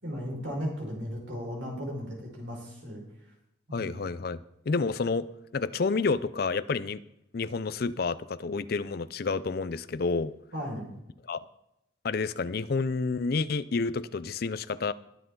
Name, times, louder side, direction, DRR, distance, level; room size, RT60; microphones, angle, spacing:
voice 1, 0.0-3.0 3.7-3.9 10.5-10.9, equal, 70° right, -1 dB, 5.1 m, -35 dB
voice 2, 3.7-5.3 5.5-7.0 7.3-10.3 11.3-11.4 12.0-14.9, left 4 dB, 50° left, 15 dB, 0.5 m, -29 dB
21.5 x 8.0 x 3.9 m, 0.83 s
head